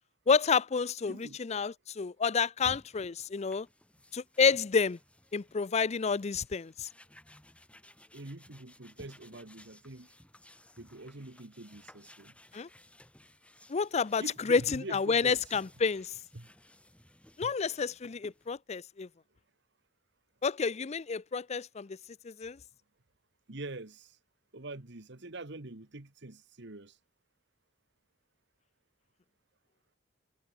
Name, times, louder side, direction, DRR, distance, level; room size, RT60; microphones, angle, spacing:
voice 1, 0.3-3.7 4.1-5.0 5.3-6.9 12.5-12.7 13.7-16.1 17.4-19.1 20.4-22.0 22.2-22.6, left 5 dB, 35° left, 0.5 m, -29 dB
voice 2, 1.1-1.4 8.1-10.1 10.8-12.3 14.2-15.4 16.3-16.5 17.4-17.5 23.5-24.2 24.5-27.0, right 2 dB, 65° right, 1.7 m, -45 dB
sound 1, 2.6-18.5, left 1 dB, 5° left, 3.4 m, -57 dB
head